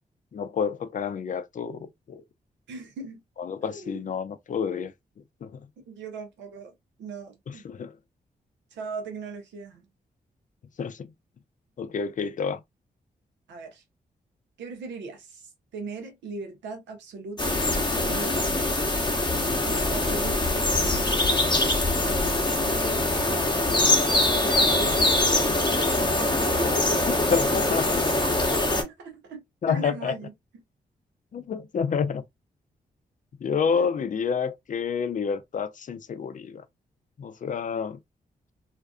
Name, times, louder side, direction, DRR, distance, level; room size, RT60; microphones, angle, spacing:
voice 1, 0.3-2.2 3.4-4.9 5.4-5.6 7.5-7.9 10.8-11.1 11.8-12.6 23.8-24.4 27.3-28.2 29.6-30.2 31.3-32.2 33.4-36.6 37.2-38.0, left 6 dB, 45° left, 0.4 m, -29 dB
voice 2, 2.7-3.2 3.6-4.1 5.9-7.6 8.7-9.9 13.5-13.8 14.6-18.5 19.3-21.5 24.4-27.2 28.5-30.3 33.7-33.9, right 3 dB, 85° right, 0.7 m, -39 dB
sound 1, 17.4-28.8, left 2 dB, 25° left, 0.9 m, -23 dB
2.5 x 2.3 x 2.2 m
supercardioid pair, 40°, 18 cm